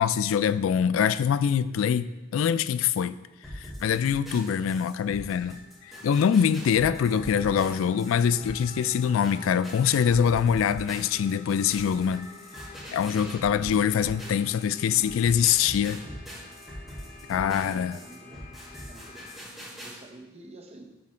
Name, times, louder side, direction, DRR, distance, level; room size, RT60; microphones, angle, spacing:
voice 1, 0.0-3.2 3.5-12.3 12.9-16.0 17.3-18.0, left 8 dB, 85° left, 15 dB, 0.3 m, -24 dB
sound 1, 3.4-14.6 15.0-19.9, equal, ahead, 3.1 m, -42 dB
sound 2, 5.1-19.4, left 4 dB, 40° left, 0.9 m, -50 dB
voice 2, 17.6-18.5 18.9-19.3 19.8-21.0, right 2 dB, 30° right, 4 dB, 0.8 m, -48 dB
9.6 x 5.0 x 4.3 m, 1.1 s
head